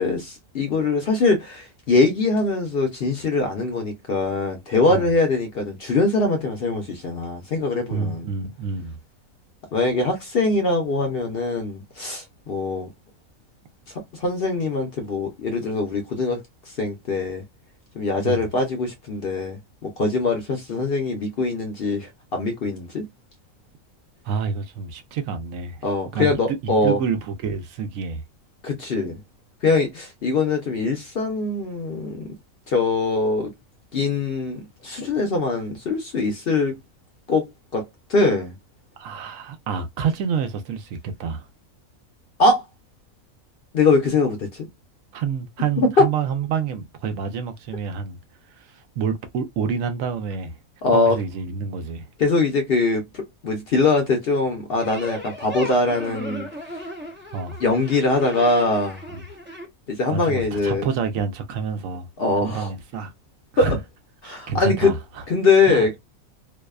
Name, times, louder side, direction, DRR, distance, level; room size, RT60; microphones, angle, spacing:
voice 1, 0.0-8.3 9.7-12.9 14.1-16.4 16.7-17.4 18.0-23.1 25.8-27.0 28.6-29.2 29.6-32.3 32.7-33.5 33.9-36.8 37.3-37.4 37.7-38.5 42.4-42.6 43.7-44.7 45.8-46.1 50.8-51.2 52.2-56.5 57.6-59.0 59.9-60.9 62.2-62.7 63.6-63.8 64.2-64.9 65.3-66.0, left 3 dB, 55° left, 0.7 m, -22 dB
voice 2, 7.9-9.0 18.2-18.4 24.2-25.9 26.1-28.2 39.0-41.5 45.1-48.2 48.6-50.6 50.9-52.1 57.3-57.6 59.1-59.2 60.1-62.1 62.4-63.1 63.5-63.8 64.2-65.2 65.7-65.9, right 6 dB, 75° right, 0.9 m, -28 dB
sound 1, 54.8-59.6, right 1 dB, 15° right, 0.3 m, -36 dB
2.6 x 2.1 x 2.2 m
omnidirectional pair, 1.5 m